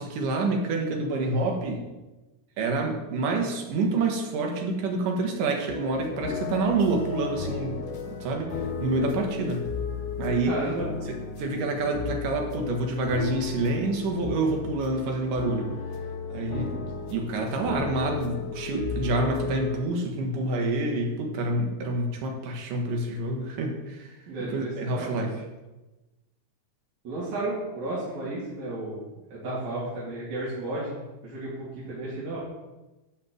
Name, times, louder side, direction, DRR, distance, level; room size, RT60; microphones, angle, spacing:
voice 1, 0.0-1.8 2.6-7.8 8.1-9.7 10.2-10.5 11.1-15.7 16.3-16.7 17.1-24.1 24.4-25.3, right 2 dB, 80° right, 2 dB, 3.0 m, -27 dB
sound 1, 5.7-19.8, left 5 dB, 80° left, 2.5 m, -34 dB
voice 2, 10.4-10.9 24.3-25.3 27.0-29.0 29.3-31.0 31.2-32.4, right 2 dB, 60° right, -9 dB, 3.9 m, -33 dB
12.0 x 4.3 x 7.7 m, 1.1 s
omnidirectional pair, 3.7 m